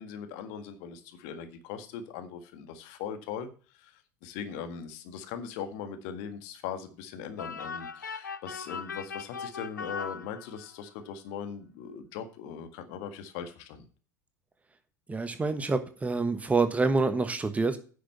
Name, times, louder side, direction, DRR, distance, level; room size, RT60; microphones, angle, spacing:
voice 1, 0.0-13.9, left 7 dB, 55° left, 8 dB, 1.7 m, -40 dB
sound 1, 7.4-10.9, left 5 dB, 85° left, 0.6 m, -39 dB
voice 2, 15.1-17.8, right 3 dB, 15° right, 10 dB, 1.2 m, -27 dB
10.0 x 6.3 x 5.6 m, 0.38 s
figure-of-eight pair, 75°, 10 cm